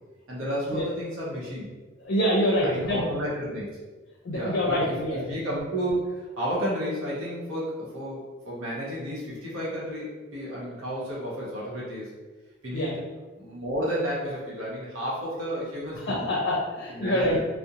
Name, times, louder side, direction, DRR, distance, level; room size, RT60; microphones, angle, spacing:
voice 1, 0.3-1.7 2.6-3.8 4.3-12.1 12.6-12.9 13.4-16.3 16.9-17.5, equal, 85° right, -6 dB, 0.8 m, -32 dB
voice 2, 2.0-3.0 4.2-5.3 12.7-12.9 16.1-17.4, equal, 55° left, -3 dB, 0.4 m, -25 dB
2.4 x 2.0 x 2.7 m, 1.3 s
head